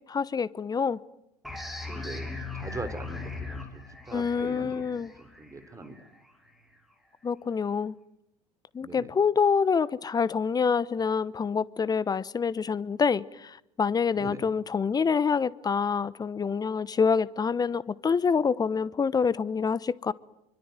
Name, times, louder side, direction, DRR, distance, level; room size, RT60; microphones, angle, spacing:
voice 1, 0.1-1.0 4.1-5.1 7.2-7.9 8.7-20.1, left 6 dB, 20° left, 1.0 m, -26 dB
sound 1, 1.4-6.8, left 3 dB, ahead, 6.0 m, -39 dB
voice 2, 1.9-2.3 2.5-3.8 4.1-6.0 8.8-9.1 14.2-14.5, right 3 dB, 15° right, 3.5 m, -41 dB
26.0 x 24.5 x 9.2 m
figure-of-eight pair, 75°, 19 cm